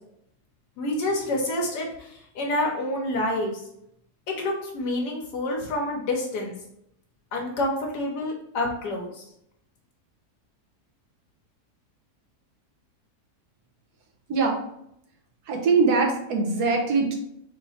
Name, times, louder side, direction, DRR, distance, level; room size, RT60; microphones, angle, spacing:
voice 1, 0.8-3.5 4.3-6.5 7.3-9.2, left 1 dB, 80° left, -1 dB, 1.4 m, -28 dB
voice 2, 15.5-17.2, right 4 dB, 75° right, 1 dB, 1.5 m, -22 dB
4.2 x 2.9 x 4.2 m, 0.75 s
omnidirectional pair, 1.7 m